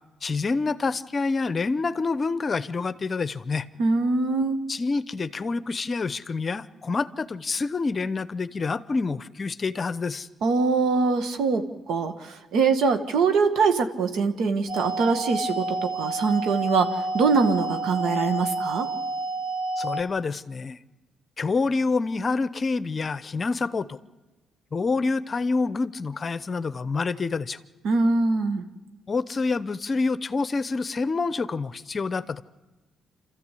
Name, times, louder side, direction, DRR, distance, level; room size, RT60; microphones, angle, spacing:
voice 1, 0.2-3.7 4.7-10.3 19.8-20.8 21.4-24.0 24.7-27.6 29.1-32.4, left 4 dB, 35° left, 15 dB, 0.8 m, -27 dB
voice 2, 3.8-4.6 10.4-18.9 27.8-28.6, right 4 dB, 75° right, 7 dB, 1.7 m, -23 dB
sound 1, 14.7-20.0, right 2 dB, 60° right, 1.6 m, -29 dB
27.0 x 14.0 x 8.4 m, 1.2 s
cardioid pair, 90°, 0 cm